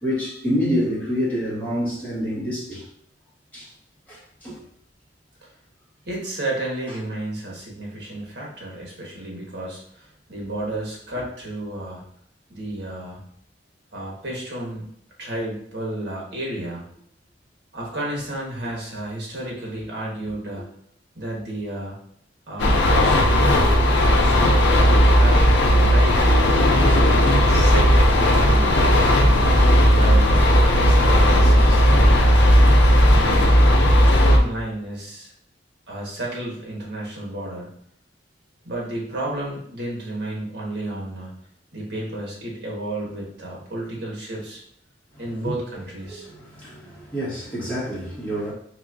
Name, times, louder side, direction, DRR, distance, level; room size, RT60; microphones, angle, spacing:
voice 1, 0.0-2.8 3.5-3.7 4.1-4.6 45.4-45.5 46.1-48.5, equal, 10° left, -9 dB, 1.5 m, -27 dB
voice 2, 6.1-12.0 12.5-13.2 13.9-14.9 15.2-16.9 17.7-20.7 21.2-22.0 22.5-23.5 24.2-26.2 26.9-29.1 29.9-32.5 33.0-33.7 34.1-35.3 35.9-37.7 38.6-41.3 41.7-44.6 45.2-46.3, right 1 dB, 65° right, -3 dB, 1.3 m, -32 dB
sound 1, 22.6-34.4, equal, 85° left, 0.6 m, -15 dB
4.2 x 2.7 x 2.5 m, 0.66 s
head